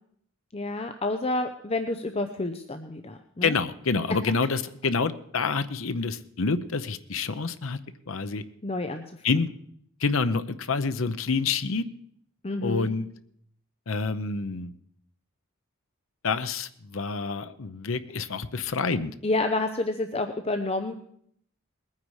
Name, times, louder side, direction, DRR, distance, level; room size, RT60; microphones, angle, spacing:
voice 1, 0.5-3.5 8.6-9.0 12.4-12.9 19.2-21.0, left 2 dB, 30° left, 7 dB, 0.7 m, -29 dB
voice 2, 3.4-7.8 8.1-8.4 9.2-9.5 10.0-11.9 12.6-13.1 13.9-14.7 16.2-19.1, left 4 dB, 75° left, 11 dB, 0.8 m, -27 dB
20.5 x 9.5 x 4.8 m, 0.66 s
head